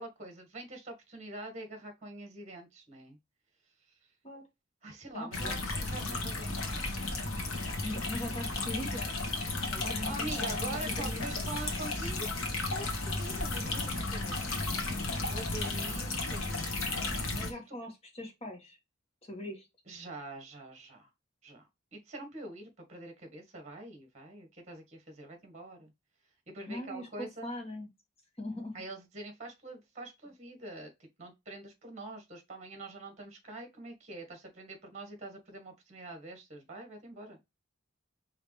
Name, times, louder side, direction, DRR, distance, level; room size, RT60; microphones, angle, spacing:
voice 1, 0.0-3.2 4.8-7.0 10.0-12.3 12.7-14.9 15.3-17.7 19.9-21.1 21.4-25.9 26.5-27.5 28.7-37.4, right 2 dB, 35° right, 1.6 m, -45 dB
voice 2, 5.1-5.5 7.8-9.3 9.7-11.5 15.8-16.2 17.4-18.8 19.2-19.7 26.7-27.9 28.4-28.7, left 1 dB, 30° left, 1.7 m, -41 dB
sound 1, 5.3-17.5, left 2 dB, 85° left, 1.4 m, -34 dB
5.0 x 3.0 x 3.2 m
head